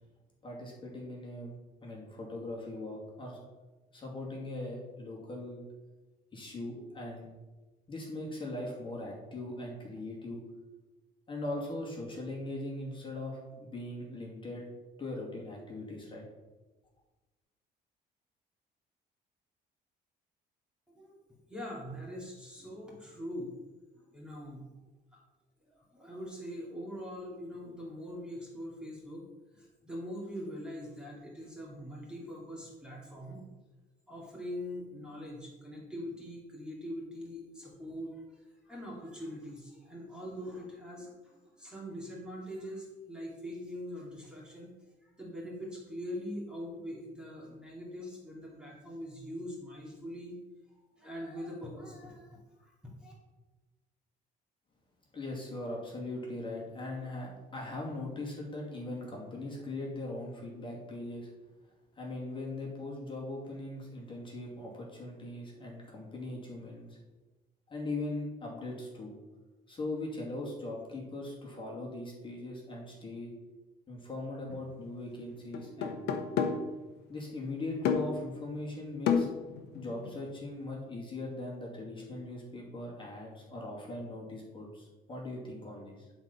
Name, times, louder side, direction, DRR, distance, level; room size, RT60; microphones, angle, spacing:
voice 1, 0.4-1.5 1.8-3.4 3.9-5.6 6.3-7.3 7.9-10.4 11.3-14.6 15.0-16.2 55.1-61.3 62.0-67.0 67.7-69.2 69.7-73.3 73.9-76.1 77.1-79.3 79.7-86.1, left 2 dB, 30° left, -3 dB, 2.4 m, -40 dB
voice 2, 21.5-23.5 24.1-24.7 25.1-25.2 25.7-29.2 29.5-33.4 34.1-44.7 45.0-50.4 50.7-53.1, equal, 5° right, -4 dB, 2.4 m, -43 dB
sound 1, 74.5-74.6 75.5-76.8 77.8-78.3 79.1-80.4, left 6 dB, 80° left, 0.9 m, -31 dB
10.5 x 4.2 x 5.4 m, 1.2 s
cardioid pair, 110°, 17 cm